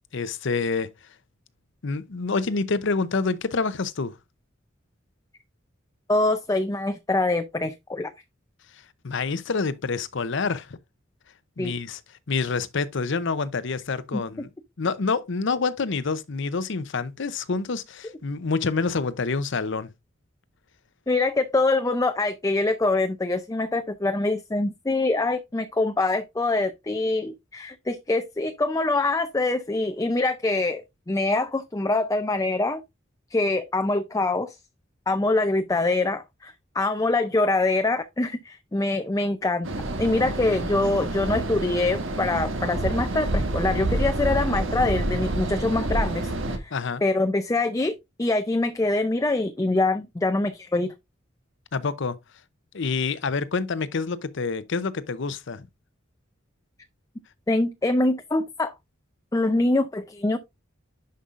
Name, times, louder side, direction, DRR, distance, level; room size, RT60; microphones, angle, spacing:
voice 1, 0.1-0.9 1.8-4.1 9.0-10.8 11.6-12.0 12.3-14.5 14.8-19.9 46.7-47.0 51.7-52.2 52.7-55.7, left 4 dB, 65° left, 0.7 m, -27 dB
voice 2, 6.1-8.1 11.6-11.7 14.1-14.2 21.1-32.8 33.3-34.5 35.1-39.7 40.0-46.8 47.0-50.9 57.5-58.7 59.3-60.4, left 2 dB, 15° left, 0.5 m, -24 dB
sound 1, 39.6-46.6, right 1 dB, 75° right, 1.3 m, -28 dB
10.5 x 5.3 x 2.5 m
head